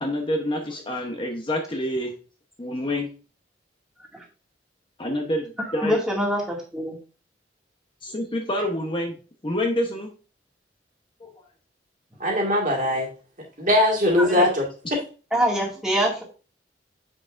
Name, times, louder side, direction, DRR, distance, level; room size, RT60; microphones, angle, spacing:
voice 1, 0.0-2.1 2.6-3.1 5.0-6.0 8.0-9.2 9.4-10.1 11.2-11.3, left 1 dB, 30° left, 2 dB, 0.9 m, -27 dB
voice 2, 5.6-7.0 14.2-14.5 15.3-16.2, equal, 5° right, -5 dB, 2.2 m, -25 dB
voice 3, 12.2-13.1 13.6-14.6 14.9-15.0, left 1 dB, 45° right, -1 dB, 1.9 m, -20 dB
7.3 x 6.2 x 2.5 m, 0.36 s
head